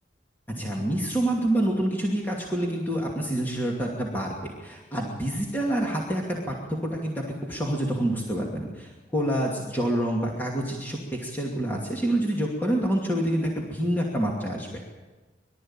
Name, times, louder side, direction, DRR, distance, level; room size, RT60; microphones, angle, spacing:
voice 1, 0.5-14.8, right 1 dB, 10° left, -2 dB, 2.6 m, -27 dB
23.5 x 13.0 x 8.9 m, 1.2 s
head